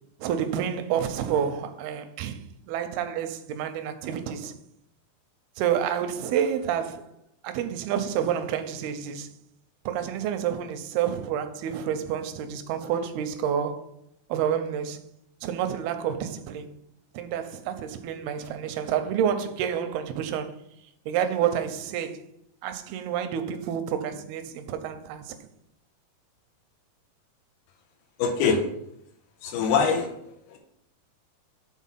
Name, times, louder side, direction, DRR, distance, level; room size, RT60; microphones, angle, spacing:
voice 1, 0.2-4.5 5.6-7.1 7.4-9.3 9.9-13.9 14.3-15.0 15.4-16.7 17.1-20.5 21.1-22.2 22.6-25.4, right 9 dB, 85° right, 2.5 m, -29 dB
voice 2, 28.2-28.6 29.4-30.1 30.5-30.6, left 5 dB, 90° left, 2.7 m, -23 dB
7.2 x 4.0 x 5.6 m
omnidirectional pair, 4.4 m